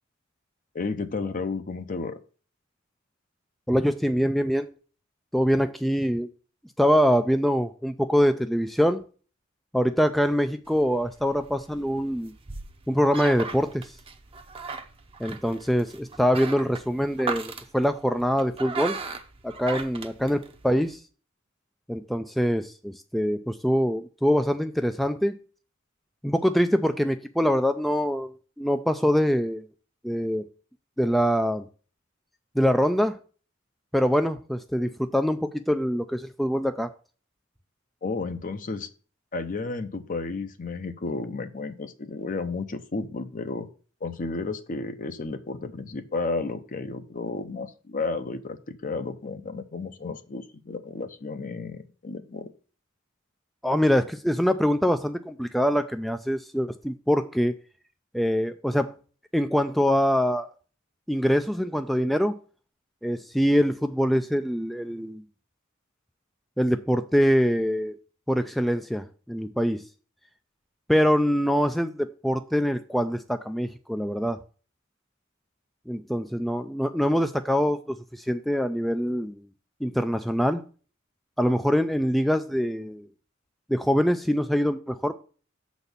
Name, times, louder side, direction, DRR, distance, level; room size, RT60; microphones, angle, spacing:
voice 1, 0.7-2.2 38.0-38.9 39.3-43.7 44.0-52.5, left 3 dB, 40° left, 0.6 m, -32 dB
voice 2, 3.7-4.7 5.3-6.3 6.8-9.0 9.7-12.3 12.9-14.0 15.2-19.0 19.4-21.0 21.9-25.4 26.2-28.3 28.6-29.7 30.0-30.5 31.0-31.7 32.6-33.2 33.9-36.9 53.6-57.5 58.1-58.9 59.3-60.5 61.1-62.3 63.0-65.2 66.6-68.0 68.3-69.8 70.9-74.4 75.9-79.5 79.8-80.6 81.4-83.1 83.7-85.2, equal, ahead, 0.3 m, -24 dB
sound 1, 10.7-20.9, right 4 dB, 25° right, 0.7 m, -38 dB
7.0 x 4.1 x 6.6 m
head